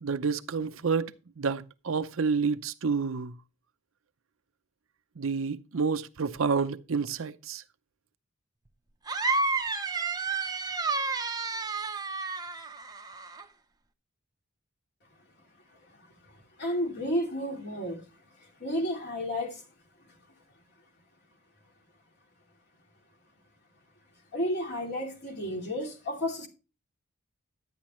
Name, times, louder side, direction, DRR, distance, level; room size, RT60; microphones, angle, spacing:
voice 1, 0.0-1.1 1.4-3.4 5.2-7.6, right 5 dB, 70° right, 0.6 m, -29 dB
sound 1, 9.1-13.4, right 3 dB, 20° right, 0.7 m, -31 dB
voice 2, 16.6-18.0 18.4-19.7 24.3-26.5, equal, 50° left, 2.8 m, -32 dB
11.5 x 9.3 x 3.1 m
head